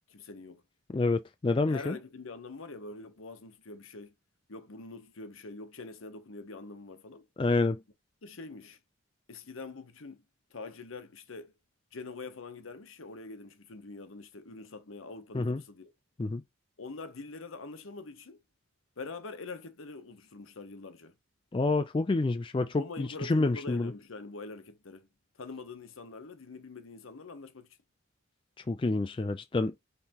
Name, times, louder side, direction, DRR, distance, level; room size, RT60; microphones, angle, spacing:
voice 1, 0.1-0.6 1.6-4.1 4.5-7.2 8.2-8.8 9.3-10.2 10.5-11.5 11.9-15.9 16.8-18.4 19.0-21.1 22.8-25.1 25.4-27.7, left 3 dB, 75° left, 0.9 m, -44 dB
voice 2, 0.9-2.0 7.4-7.8 15.3-15.6 16.2-16.4 21.5-23.9 28.7-29.8, left 3 dB, 25° left, 0.3 m, -28 dB
5.5 x 3.3 x 2.9 m
head